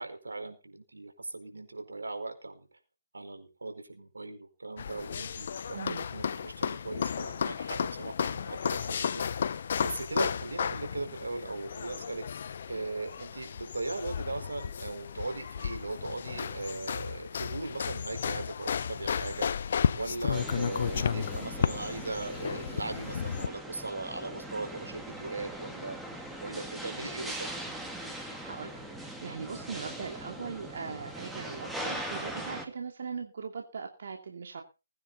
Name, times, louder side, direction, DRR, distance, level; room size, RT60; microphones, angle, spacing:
voice 1, 0.0-2.7 3.1-9.2 9.8-12.2 12.7-19.5 19.9-26.0 26.4-27.5, right 3 dB, 80° right, 6 dB, 4.7 m, -38 dB
sound 1, 4.8-23.5, left 7 dB, 45° left, 0.9 m, -33 dB
voice 2, 5.7-6.1 28.1-34.6, right 5 dB, 50° right, 3 dB, 2.7 m, -40 dB
sound 2, 20.3-32.7, right 1 dB, 5° right, 1.8 m, -41 dB
20.5 x 9.7 x 4.1 m, 0.32 s
figure-of-eight pair, 150°, 0 cm